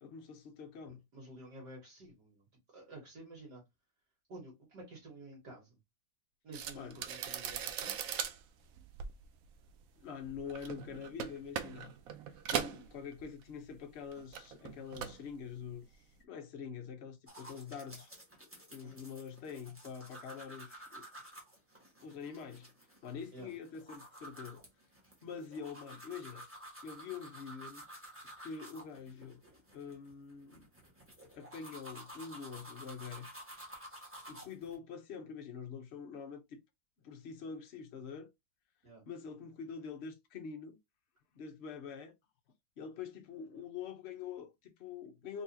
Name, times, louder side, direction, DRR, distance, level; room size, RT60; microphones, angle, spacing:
voice 1, 0.0-1.0 6.7-7.0 10.0-11.9 12.5-18.1 18.7-21.0 22.0-22.7 23.0-24.6 25.2-26.5 26.8-27.9 28.4-29.4 29.7-30.7 31.4-33.3 34.3-36.6 37.0-38.3 39.1-40.8 41.3-42.1 42.8-45.4, left 6 dB, 70° left, 0.6 m, -45 dB
voice 2, 0.8-2.4 2.7-3.6 4.3-5.8 6.4-8.2 18.8-19.0 23.3-23.5 38.8-39.0, right 1 dB, 60° right, 1.9 m, -51 dB
sound 1, 6.5-13.8 14.0-15.3 15.6-15.9, right 8 dB, 85° right, 0.7 m, -40 dB
sound 2, 17.3-34.8, right 1 dB, 10° right, 1.0 m, -52 dB
4.0 x 2.9 x 2.7 m
omnidirectional pair, 2.1 m